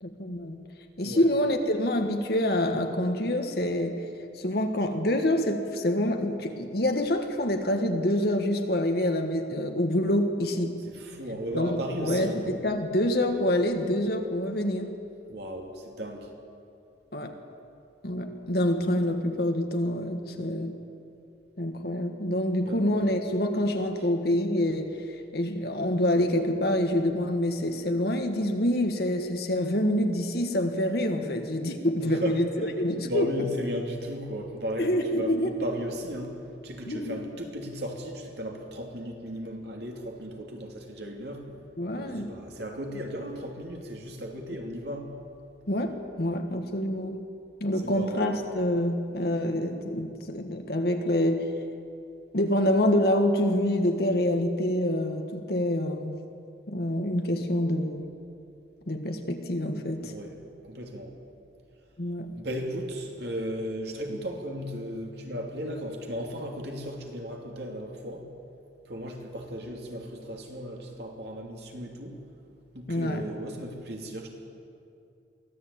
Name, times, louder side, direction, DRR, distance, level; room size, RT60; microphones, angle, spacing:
voice 1, 0.0-0.6 1.0-4.0 4.3-10.8 11.5-15.0 17.1-17.4 18.0-20.8 21.6-33.5 34.8-35.7 36.8-37.3 41.8-42.4 45.7-47.2 47.6-51.5 52.3-56.1 56.7-58.1 58.9-60.1 62.0-62.3 72.9-73.3, left 1 dB, 55° left, 4 dB, 1.5 m, -26 dB
voice 2, 10.9-12.5 15.3-16.3 22.7-23.0 32.0-32.7 33.0-34.9 35.1-36.3 36.6-41.4 41.9-45.1 47.8-48.3 60.0-60.3 60.6-61.1 62.4-68.2 68.9-72.1 72.7-74.3, equal, 60° right, 1 dB, 3.0 m, -35 dB
23.5 x 15.5 x 8.7 m, 2.5 s
head